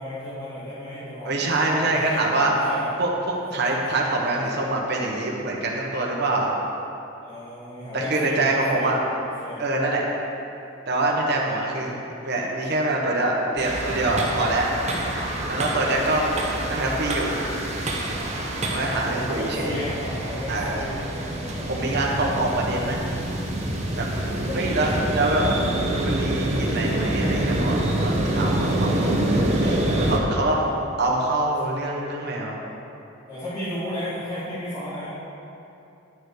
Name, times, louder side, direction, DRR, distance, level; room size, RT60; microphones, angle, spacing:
voice 1, 0.0-2.9 3.4-3.7 7.2-8.9 9.4-9.6 16.6-16.7 18.7-22.5 24.4-25.3 33.3-35.1, left 1 dB, 20° left, -13 dB, 2.5 m, -34 dB
voice 2, 1.2-2.5 3.0-3.1 3.5-6.5 7.9-9.0 9.6-10.0 10.9-11.9 12.2-14.7 15.4-16.4 16.7-17.4 18.7-19.7 20.5-20.9 21.7-23.0 24.0-25.4 25.9-30.6 31.0-32.6, right 2 dB, 55° right, -2 dB, 1.3 m, -25 dB
sound 1, 13.6-30.2, right 1 dB, 35° right, 1.2 m, -26 dB
11.0 x 6.9 x 4.9 m, 2.8 s
head